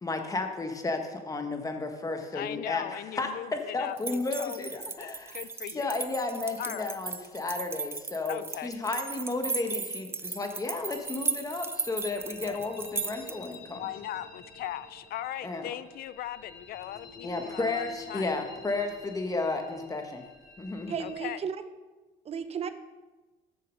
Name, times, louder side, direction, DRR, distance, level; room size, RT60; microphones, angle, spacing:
voice 1, 0.0-5.4 5.7-13.8 15.4-15.7 17.2-20.2 20.6-21.0, left 3 dB, 20° left, 5 dB, 1.1 m, -33 dB
voice 2, 2.3-4.6 5.0-6.0 6.6-7.0 8.3-8.8 12.4-12.6 13.7-18.3 21.0-21.4, left 12 dB, 65° left, 15 dB, 0.5 m, -39 dB
sound 1, 4.0-13.5, right 4 dB, 15° right, 0.4 m, -36 dB
sound 2, 10.9-21.1, left 2 dB, 45° left, 2.3 m, -49 dB
voice 3, 20.9-21.6 22.2-22.7, right 7 dB, 35° right, 11 dB, 0.7 m, -33 dB
6.8 x 6.2 x 6.3 m, 1.2 s
cardioid pair, 110°, 17 cm